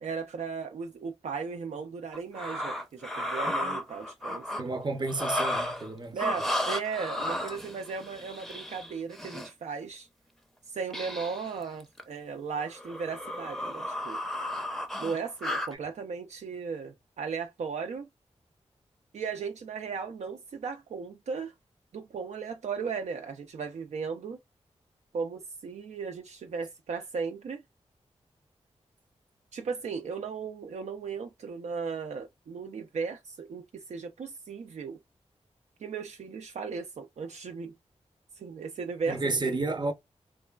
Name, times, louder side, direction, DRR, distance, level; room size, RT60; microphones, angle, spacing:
voice 1, 0.0-4.4 6.1-10.1 10.7-14.2 15.0-18.1 19.1-21.5 21.9-24.4 25.1-27.6 29.5-35.0 35.8-37.7 38.4-39.6, right 5 dB, 70° right, 0.4 m, -36 dB
sound 1, 2.1-4.6 5.1-5.9 6.2-9.5 10.9-11.5 11.8-12.0 12.6-15.7, left 1 dB, ahead, 0.5 m, -34 dB
voice 2, 4.6-6.5 39.1-39.9, right 3 dB, 40° right, 0.7 m, -31 dB
3.0 x 2.2 x 2.3 m
cardioid pair, 65°, 12 cm